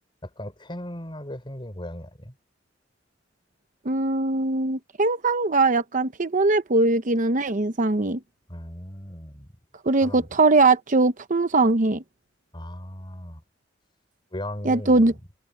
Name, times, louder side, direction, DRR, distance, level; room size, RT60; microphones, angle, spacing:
voice 1, 0.2-2.3 8.5-9.5 10.0-10.3 12.5-13.4 14.3-15.2, left 1 dB, 25° left, 5.2 m, -37 dB
voice 2, 3.8-8.2 9.8-12.0 14.6-15.1, right 3 dB, 45° right, 0.8 m, -21 dB
head